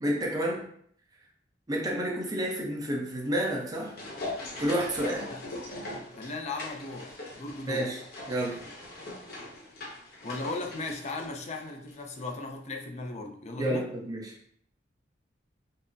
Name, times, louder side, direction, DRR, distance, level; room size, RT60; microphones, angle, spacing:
voice 1, 0.0-0.7 1.7-3.9 4.6-5.3 7.7-8.0 8.3-8.6 13.6-14.3, equal, 20° right, -2 dB, 0.7 m, -30 dB
sound 1, 3.4-12.0 12.3-12.4, left 2 dB, 55° left, 1.0 m, -41 dB
voice 2, 6.2-7.9 10.2-13.9, left 2 dB, 40° left, 3 dB, 0.5 m, -37 dB
5.4 x 2.0 x 2.6 m, 0.64 s
head